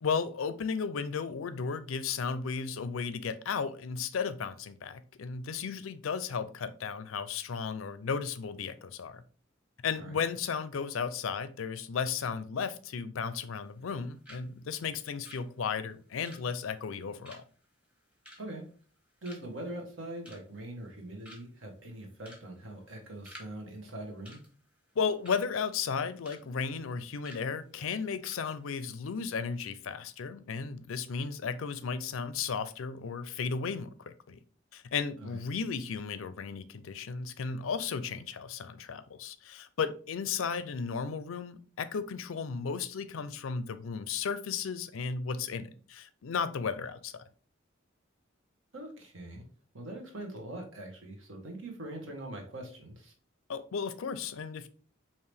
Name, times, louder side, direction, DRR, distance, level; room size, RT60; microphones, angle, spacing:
voice 1, 0.0-9.2 9.8-17.4 25.0-34.4 34.7-47.2 53.5-54.7, left 6 dB, 85° left, 0.5 m, -34 dB
sound 1, 13.4-14.0 14.2-14.5 14.7-19.0 19.2-19.6 20.0-20.6 20.9-21.0 21.2-21.7 22.2-22.5 22.7-23.5 23.8-23.9 24.2-25.4 25.8-26.4 26.7-26.9 27.2-27.4 27.9-28.0 28.2-28.4 28.7-28.9, equal, 5° right, 1.0 m, -52 dB
voice 2, 19.2-24.4 35.2-35.4 48.7-49.4 49.7-53.1, right 1 dB, 75° right, 1.3 m, -42 dB
4.7 x 2.9 x 3.3 m
head